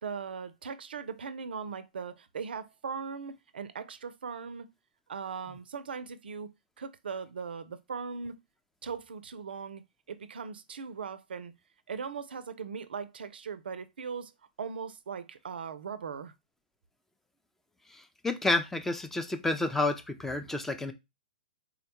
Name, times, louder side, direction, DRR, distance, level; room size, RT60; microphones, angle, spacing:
voice 1, 0.0-4.7 5.1-6.5 6.8-8.4 8.8-9.8 10.1-11.5 11.9-14.3 14.6-16.3, right 6 dB, 75° right, 0.4 m, -39 dB
voice 2, 18.2-20.9, left 2 dB, 5° left, 0.4 m, -29 dB
3.7 x 2.1 x 2.9 m
hypercardioid pair, 120°, 5 cm